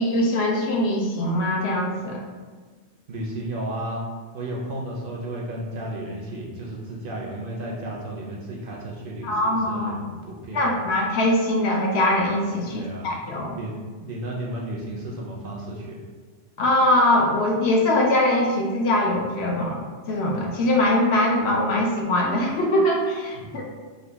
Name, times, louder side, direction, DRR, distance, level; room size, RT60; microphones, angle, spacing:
voice 1, 0.0-2.2 9.2-10.0 10.5-13.6 16.6-19.8 20.1-23.6, left 1 dB, 70° left, 0 dB, 0.8 m, -22 dB
voice 2, 3.1-4.0 4.3-10.8 12.7-13.2 13.6-16.0 23.3-23.5, right 1 dB, 60° right, -2 dB, 0.6 m, -33 dB
3.8 x 2.2 x 3.4 m, 1.5 s
omnidirectional pair, 1.2 m